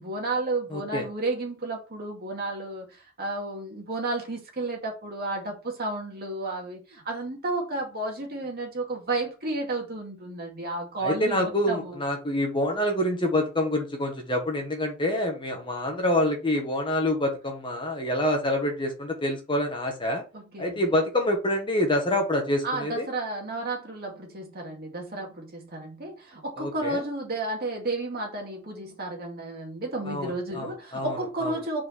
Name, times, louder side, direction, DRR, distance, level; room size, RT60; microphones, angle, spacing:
voice 1, 0.0-12.0 20.3-20.9 22.6-31.9, right 2 dB, 45° right, 2.1 m, -32 dB
voice 2, 0.7-1.0 11.0-20.2 20.6-23.1 26.6-27.0 30.0-31.5, left 1 dB, 25° left, 1.5 m, -27 dB
4.9 x 4.7 x 4.6 m
head